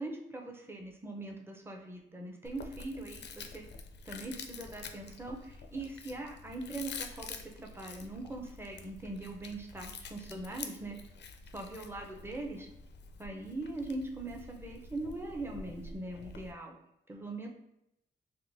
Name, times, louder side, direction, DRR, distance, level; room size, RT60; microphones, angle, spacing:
voice 1, 0.0-3.6 4.1-11.0 11.5-12.7 13.2-16.7 17.1-17.5, right 2 dB, 10° right, 1 dB, 0.6 m, -41 dB
Chewing mastication, 2.4-16.5, left 4 dB, 65° left, 0.4 m, -48 dB
3.6 x 2.5 x 2.6 m, 0.83 s
cardioid pair, 70°, 20 cm